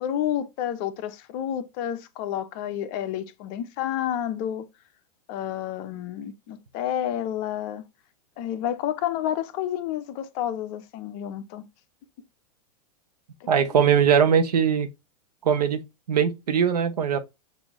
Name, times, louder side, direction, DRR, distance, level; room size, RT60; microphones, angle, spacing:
voice 1, 0.0-4.7 5.3-7.9 8.4-11.7 13.4-13.5, left 11 dB, 45° left, 0.7 m, -30 dB
voice 2, 13.5-14.9 15.4-15.8 16.1-17.2, right 7 dB, 80° right, 0.9 m, -21 dB
6.4 x 2.7 x 2.9 m
hypercardioid pair, 110°, 20 cm